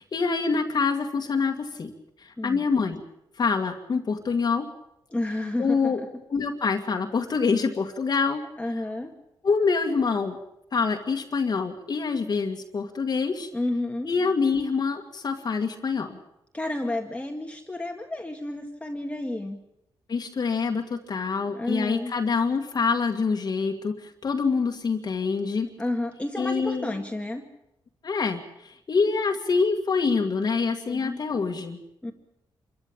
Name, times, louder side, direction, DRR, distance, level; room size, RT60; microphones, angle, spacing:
voice 1, 0.0-1.9 2.2-3.0 3.4-4.7 5.6-6.0 6.3-8.4 9.4-10.4 10.7-13.5 14.1-16.2 20.1-25.7 26.4-27.0 28.0-31.8, left 5 dB, 45° left, 2 dB, 2.1 m, -26 dB
voice 2, 5.1-6.1 8.6-9.1 13.5-14.1 16.5-19.6 21.6-22.1 25.8-27.4 30.9-31.2 32.0-32.1, left 1 dB, 15° left, 2 dB, 2.0 m, -31 dB
26.5 x 14.5 x 8.8 m, 0.83 s
cardioid pair, 105°, 9 cm